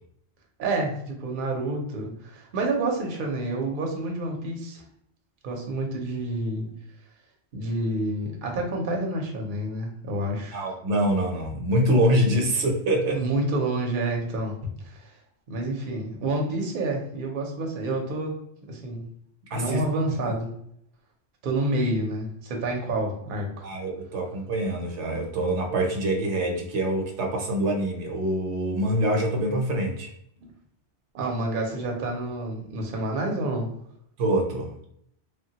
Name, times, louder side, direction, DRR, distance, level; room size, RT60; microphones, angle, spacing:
voice 1, 0.6-4.8 5.4-6.6 7.5-10.7 13.1-15.2 15.5-18.4 18.7-19.0 19.5-20.5 21.4-23.7 31.1-33.7, right 2 dB, 55° right, 1 dB, 0.7 m, -28 dB
voice 2, 10.5-13.2 19.5-19.8 23.6-30.1 34.2-34.7, right 1 dB, 75° right, 1 dB, 0.9 m, -25 dB
3.2 x 2.2 x 2.7 m, 0.71 s
omnidirectional pair, 1.2 m